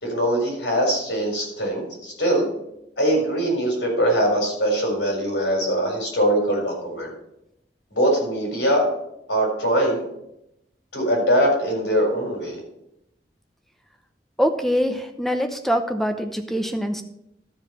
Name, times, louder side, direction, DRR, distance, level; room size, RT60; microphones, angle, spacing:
voice 1, 0.0-2.5 3.0-7.1 7.9-8.9 9.3-10.0 10.9-12.6, equal, 80° left, 0 dB, 4.3 m, -22 dB
voice 2, 14.4-17.0, equal, ahead, 7 dB, 0.7 m, -24 dB
13.0 x 4.8 x 5.5 m, 0.81 s
head